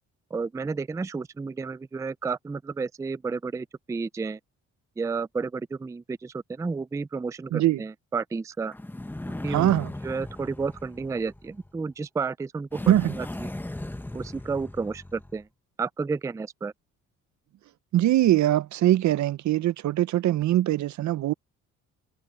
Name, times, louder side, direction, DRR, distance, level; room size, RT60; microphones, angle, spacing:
voice 1, 0.3-4.4 5.0-8.7 9.4-9.7 10.0-13.5 14.1-15.5 15.8-16.7, right 4 dB, 10° right, 0.3 m, -31 dB
sound 1, 8.7-11.8 12.7-15.4, left 1 dB, 5° left, 0.9 m, -38 dB
voice 2, 9.5-9.9 12.9-13.1 17.9-21.3, right 13 dB, 70° right, 0.7 m, -22 dB
cardioid pair, 90°, 30 cm